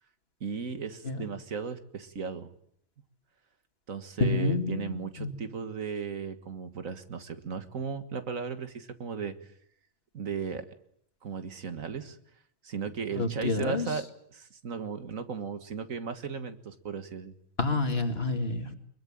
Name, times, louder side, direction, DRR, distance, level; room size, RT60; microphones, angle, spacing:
voice 1, 0.4-2.5 3.9-9.5 10.1-10.7 11.2-12.2 12.6-17.3, right 5 dB, 80° right, 10 dB, 2.1 m, -36 dB
voice 2, 4.2-5.3 13.1-14.0 17.6-18.8, left 3 dB, 50° left, 6 dB, 2.6 m, -29 dB
24.0 x 22.0 x 8.8 m, 0.67 s
omnidirectional pair, 1.4 m